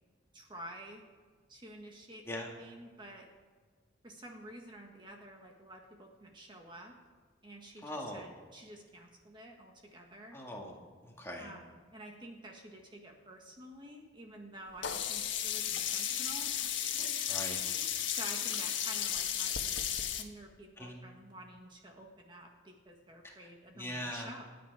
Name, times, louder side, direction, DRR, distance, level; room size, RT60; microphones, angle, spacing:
voice 1, 0.3-1.0 1.5-3.3 4.0-6.9 7.4-10.4 11.4-16.5 18.1-19.6 20.1-24.5, right 1 dB, 25° right, 1 dB, 1.5 m, -50 dB
voice 2, 7.8-8.3 10.3-10.7 11.0-11.5 17.3-17.6 20.8-21.0 23.2-23.3 23.7-24.3, left 1 dB, 15° left, -1 dB, 2.1 m, -41 dB
Sink (filling or washing), 14.8-20.2, left 9 dB, 75° left, 1.3 m, -34 dB
28.0 x 9.4 x 4.9 m, 1.5 s
head